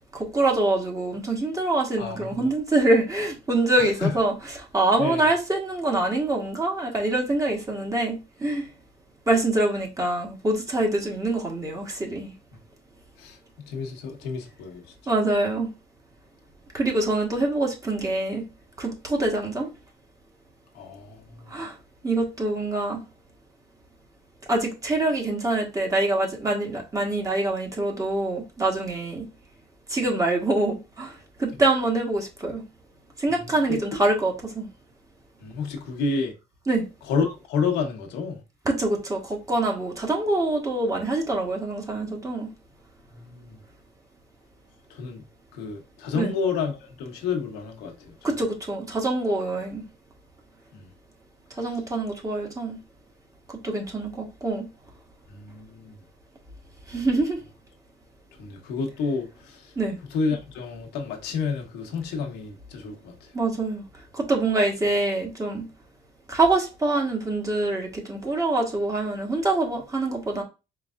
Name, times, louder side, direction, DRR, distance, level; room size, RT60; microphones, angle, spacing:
voice 1, 0.1-4.3 4.7-8.7 9.3-12.3 15.1-15.7 16.7-18.4 18.8-19.7 21.5-21.7 22.0-23.0 24.5-29.2 29.9-32.6 33.2-34.7 36.7-36.8 38.6-42.5 46.1-46.3 48.2-49.8 51.6-52.8 53.6-54.7 56.9-57.4 59.8-60.0 63.3-63.8 64.1-65.7 66.3-70.4, right 2 dB, 20° right, 1.4 m, -25 dB
voice 2, 2.0-2.5 3.8-4.1 5.0-5.3 13.2-13.4 13.7-14.8 20.7-21.5 33.4-34.0 35.4-36.3 37.1-38.4 43.1-43.6 44.9-45.2 45.5-48.1 50.7-50.9 51.6-51.7 55.3-56.0 58.4-59.7 60.1-63.1, left 5 dB, 90° left, 1.0 m, -30 dB
4.7 x 3.2 x 2.5 m
cardioid pair, 110°, 17 cm